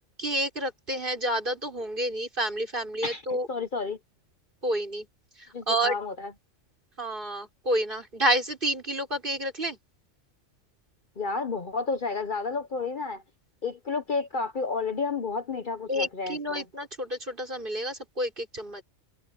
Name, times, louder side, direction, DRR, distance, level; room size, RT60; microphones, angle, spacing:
voice 1, 0.2-3.5 4.6-5.1 5.7-6.0 7.0-9.8 15.9-18.8, right 1 dB, 45° right, 5.4 m, -29 dB
voice 2, 3.0-4.0 5.5-6.3 11.2-13.2 13.6-16.6, left 4 dB, 45° left, 1.0 m, -31 dB
omnidirectional pair, 1.3 m